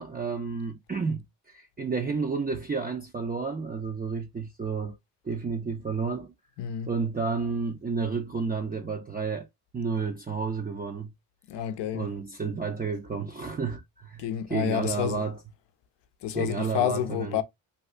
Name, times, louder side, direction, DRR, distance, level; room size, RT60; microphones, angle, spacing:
voice 1, 0.0-5.0 5.2-6.3 6.9-9.5 9.7-11.1 11.9-14.2 14.5-15.4 16.3-17.3, right 5 dB, 20° right, 0.5 m, -31 dB
voice 2, 6.6-6.9 11.5-12.1 14.2-15.3 16.2-17.4, left 10 dB, 70° left, 0.6 m, -29 dB
2.7 x 2.3 x 3.2 m
supercardioid pair, 50°, 44 cm